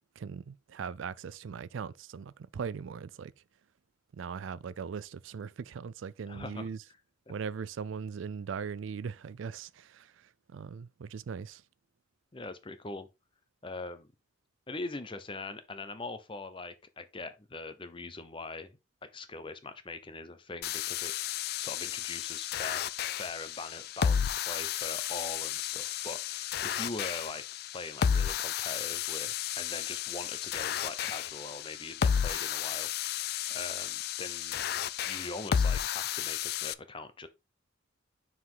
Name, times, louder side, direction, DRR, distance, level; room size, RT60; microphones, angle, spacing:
voice 1, 0.2-3.3 4.1-6.8 7.3-11.6, right 6 dB, 75° right, 0.4 m, -39 dB
voice 2, 6.3-6.7 12.3-13.1 13.6-14.1 14.7-22.8 23.2-27.4 27.7-34.6 35.0-37.3, left 3 dB, 25° left, 0.7 m, -42 dB
sound 1, 20.6-36.7, left 8 dB, 50° left, 0.3 m, -32 dB
5.7 x 4.8 x 3.9 m
head